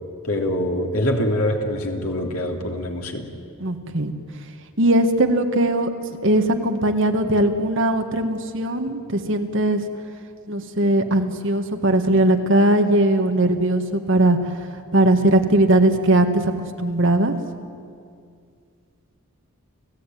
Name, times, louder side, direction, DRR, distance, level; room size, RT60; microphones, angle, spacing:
voice 1, 0.2-3.3, left 1 dB, 80° left, 2 dB, 3.1 m, -24 dB
voice 2, 3.6-4.1 4.8-5.9 6.2-9.8 10.5-14.4 14.9-16.5 16.8-17.3, right 1 dB, 55° right, 5 dB, 1.8 m, -19 dB
30.0 x 16.5 x 9.4 m, 2.3 s
head